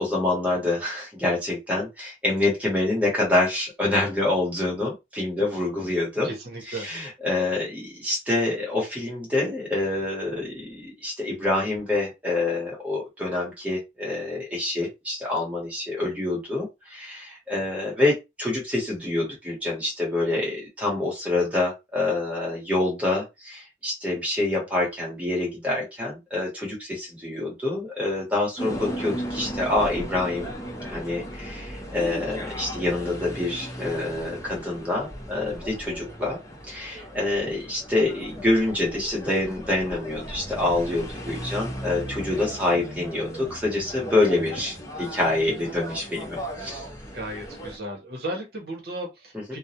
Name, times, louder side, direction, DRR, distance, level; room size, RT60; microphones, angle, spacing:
voice 1, 0.0-6.3 6.8-30.5 30.8-36.4 36.7-46.8, left 2 dB, 10° right, 1.0 m, -26 dB
voice 2, 6.2-6.9 37.4-37.5 47.1-49.6, right 1 dB, 55° right, 0.8 m, -35 dB
sound 1, 28.6-47.8, equal, 15° left, 0.6 m, -36 dB
2.3 x 2.0 x 2.7 m
head